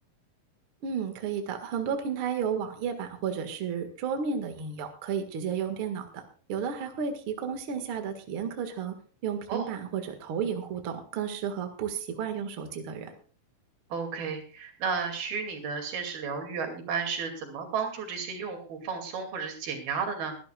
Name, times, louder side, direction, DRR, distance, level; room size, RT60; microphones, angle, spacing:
voice 1, 0.8-6.2 6.5-8.9 9.2-13.1, right 7 dB, 45° right, 6 dB, 2.2 m, -32 dB
voice 2, 13.9-20.4, right 5 dB, 85° right, 4 dB, 4.5 m, -33 dB
24.0 x 11.0 x 2.4 m, 0.41 s
omnidirectional pair, 4.1 m